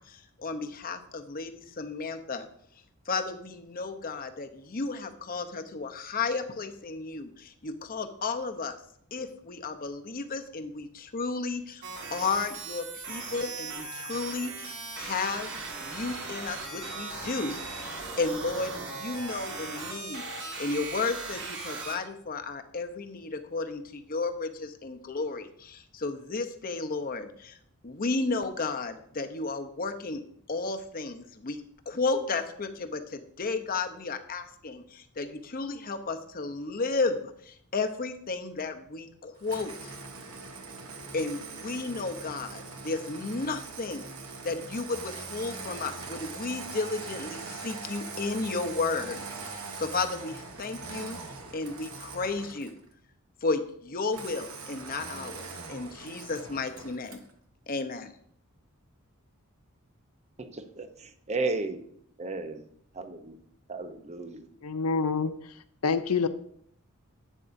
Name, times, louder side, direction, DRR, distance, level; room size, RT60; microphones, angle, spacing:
voice 1, 0.1-2.4 3.1-8.7 9.1-11.8 12.1-17.6 17.9-27.6 27.8-30.2 30.5-40.0 41.1-44.0 44.4-51.2 51.5-52.7 53.4-57.2 57.7-58.1, left 3 dB, 40° left, 6 dB, 0.8 m, -33 dB
sound 1, 11.8-22.0, right 3 dB, 55° right, 1.9 m, -38 dB
Engine starting, 39.4-52.8 54.1-57.3, right 4 dB, 75° right, 1.2 m, -42 dB
voice 2, 60.4-61.8 62.2-62.6 63.0-63.4 63.7-64.4, right 3 dB, 30° right, 8 dB, 0.8 m, -34 dB
voice 3, 64.6-65.3 65.8-66.3, left 5 dB, 90° left, 11 dB, 0.6 m, -26 dB
11.0 x 8.1 x 2.6 m, 0.67 s
head